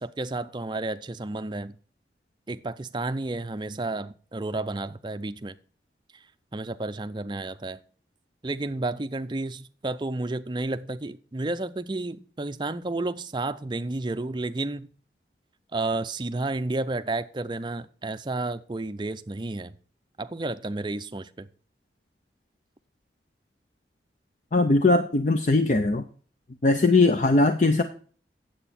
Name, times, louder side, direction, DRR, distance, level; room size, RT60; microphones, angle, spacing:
voice 1, 0.0-1.7 2.5-5.5 6.5-7.8 8.4-14.9 15.7-19.7 20.2-21.5, right 2 dB, 25° right, 0.5 m, -31 dB
voice 2, 24.5-26.0 26.6-27.8, left 2 dB, 45° left, 0.6 m, -20 dB
9.1 x 7.8 x 4.2 m
head